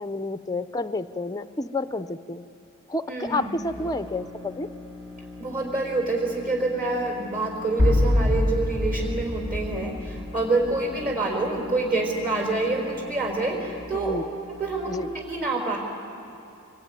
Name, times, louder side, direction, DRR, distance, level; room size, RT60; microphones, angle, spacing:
voice 1, 0.0-2.4 2.9-4.7 13.9-14.2 14.9-15.1, left 2 dB, 15° left, 11 dB, 0.5 m, -30 dB
voice 2, 3.1-3.5 5.4-14.2 14.6-15.8, right 3 dB, 40° right, 0 dB, 4.4 m, -27 dB
sound 1, 3.5-15.2, left 3 dB, 20° right, 4.6 m, -42 dB
sound 2, 7.8-10.7, left 1 dB, 65° right, 2.5 m, -24 dB
24.5 x 22.5 x 9.4 m, 2.8 s
head